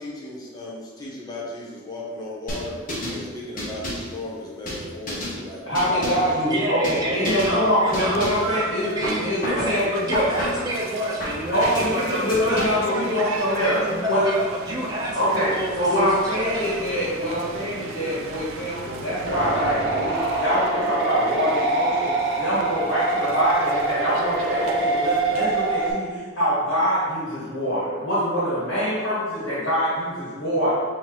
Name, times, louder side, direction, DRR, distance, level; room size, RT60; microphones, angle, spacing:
voice 1, 0.0-2.8 3.1-6.3 6.8-7.4, left 1 dB, 20° left, -5 dB, 0.8 m, -36 dB
sound 1, 2.5-3.2 3.6-4.1 4.7-5.4 5.7-6.3 6.8-7.0 7.2-7.5 7.9-8.5 9.0-9.7 10.1-10.7 11.2-11.9 12.3-12.9, left 1 dB, 45° left, 1.2 m, -31 dB
voice 2, 5.6-10.5 11.5-13.8 14.1-14.3 15.1-30.8, equal, 70° left, -10 dB, 1.5 m, -24 dB
voice 3, 6.5-8.3 8.7-13.2 13.5-16.1 16.4-16.6, equal, 20° right, -6 dB, 0.7 m, -28 dB
sound 2, 7.8-25.5, right 4 dB, 85° right, 0.4 m, -37 dB
sound 3, 19.3-25.9, right 3 dB, 60° right, 0.8 m, -24 dB
5.7 x 2.8 x 3.1 m, 1.5 s
head